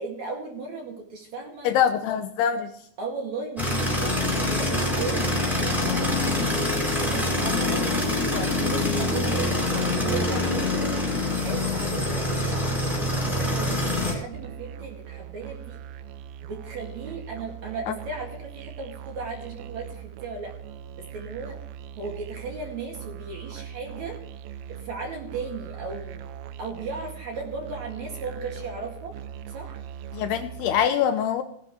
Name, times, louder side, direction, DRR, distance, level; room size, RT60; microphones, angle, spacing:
voice 1, 0.0-1.7 3.0-6.6 7.0-12.6 12.9-15.8 16.5-20.5 21.0-21.6 22.0-24.2 24.8-26.2 26.6-29.1 29.5-29.8, right 4 dB, 50° right, 1 dB, 2.8 m, -36 dB
voice 2, 1.6-2.7 17.9-18.0 30.1-31.4, left 9 dB, 80° left, 8 dB, 2.5 m, -24 dB
sound 1, 3.6-14.1, left 2 dB, ahead, 3.9 m, -25 dB
Musical instrument, 14.3-30.8, right 9 dB, 85° right, 3.0 m, -40 dB
18.0 x 10.5 x 3.1 m, 0.70 s
omnidirectional pair, 5.1 m